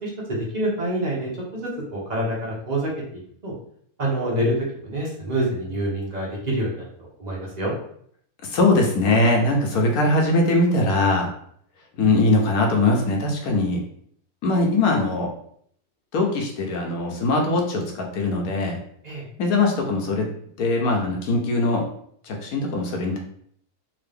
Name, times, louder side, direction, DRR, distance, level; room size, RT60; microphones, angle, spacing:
voice 1, 0.0-1.3 1.6-3.5 4.0-6.9 7.2-7.7 19.0-19.2, right 1 dB, 30° right, -4 dB, 1.0 m, -27 dB
voice 2, 8.4-11.3 12.0-13.8 14.4-15.3 16.1-18.8 19.4-20.3 20.6-21.8 22.2-23.2, left 2 dB, 70° left, 1 dB, 1.2 m, -21 dB
3.8 x 2.5 x 3.4 m, 0.64 s
omnidirectional pair, 1.7 m